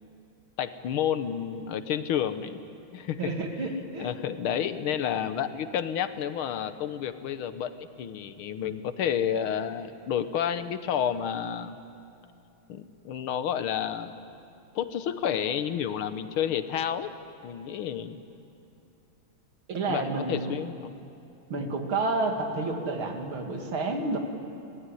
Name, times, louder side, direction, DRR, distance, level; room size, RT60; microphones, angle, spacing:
voice 1, 0.6-2.6 2.9-3.3 4.0-7.7 8.0-11.8 12.7-14.1 14.8-17.1 17.4-18.2 19.9-20.9 21.6-21.7, left 9 dB, 85° left, 11 dB, 1.9 m, -30 dB
voice 2, 3.2-4.1 19.7-20.5 21.5-24.2, right 3 dB, 75° right, 3 dB, 3.1 m, -30 dB
24.5 x 18.5 x 10.0 m, 2.7 s
omnidirectional pair, 2.3 m